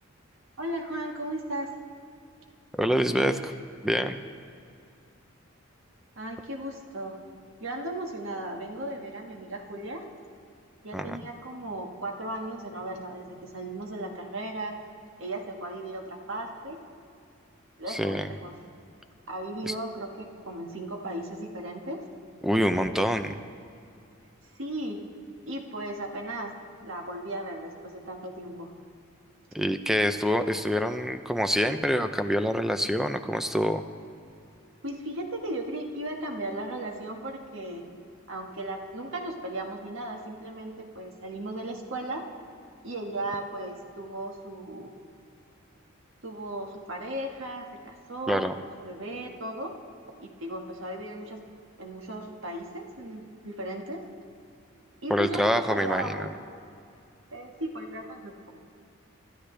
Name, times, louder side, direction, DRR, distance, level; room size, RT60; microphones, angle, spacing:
voice 1, 0.6-1.8 6.2-7.2 7.6-10.1 10.8-14.8 15.2-16.8 17.8-18.5 19.3-22.0 24.6-25.0 25.5-28.7 34.8-37.9 38.3-42.3 42.8-44.9 46.2-49.8 50.2-51.4 51.8-54.0 55.0-56.3 57.3-58.5, right 1 dB, 65° right, 1 dB, 1.7 m, -36 dB
voice 2, 2.7-3.5 3.8-4.2 10.9-11.2 17.9-18.3 19.7-19.8 22.4-23.3 29.5-33.8 48.3-48.5 55.1-56.2, equal, ahead, 8 dB, 0.5 m, -26 dB
26.5 x 12.0 x 3.4 m, 2.5 s
head